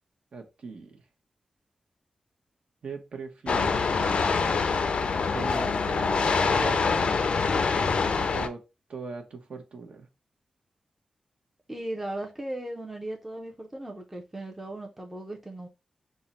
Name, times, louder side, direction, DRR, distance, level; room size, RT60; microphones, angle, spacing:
voice 1, 0.3-1.0 2.8-4.2 5.3-7.3 8.3-8.6 8.9-10.1, right 4 dB, 55° right, 0.8 m, -39 dB
sound 1, 3.5-8.5, left 4 dB, 50° left, 0.4 m, -25 dB
voice 2, 11.7-15.7, right 1 dB, 10° right, 0.5 m, -37 dB
3.6 x 2.1 x 4.0 m
wide cardioid pair, 165°, 2 cm